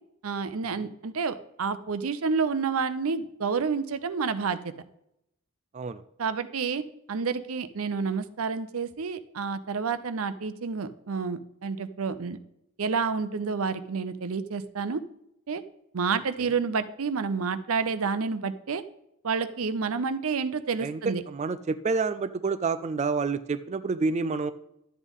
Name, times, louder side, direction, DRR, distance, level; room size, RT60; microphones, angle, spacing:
voice 1, 0.2-4.7 6.2-12.4 12.8-15.0 15.5-15.6 15.9-18.8 19.2-21.2, right 5 dB, 80° right, 12 dB, 0.6 m, -29 dB
voice 2, 21.3-24.5, right 4 dB, 30° right, 11 dB, 0.4 m, -28 dB
12.0 x 8.2 x 3.6 m, 0.82 s
head